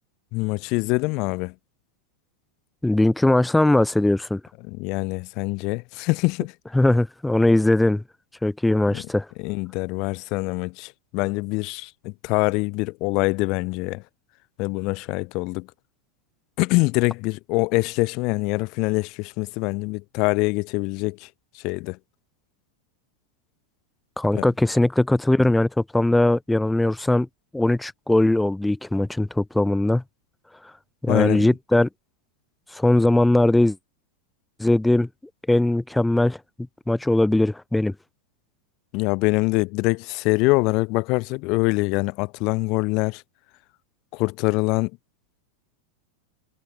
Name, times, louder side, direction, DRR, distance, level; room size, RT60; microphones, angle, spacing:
voice 1, 0.3-1.5 4.7-6.5 8.9-9.0 9.4-14.0 14.6-15.7 16.6-21.3 21.5-22.0 24.3-24.5 31.1-31.5 38.9-43.2 44.1-44.9, left 26 dB, 40° left, 0.7 m, -24 dB
voice 2, 2.8-4.4 6.7-8.0 8.4-9.3 24.2-27.3 27.5-30.0 31.0-31.9 32.7-33.8 34.6-35.1 35.5-36.4 36.9-37.9, left 1 dB, 5° left, 0.6 m, -20 dB
figure-of-eight pair, 90°, 0 cm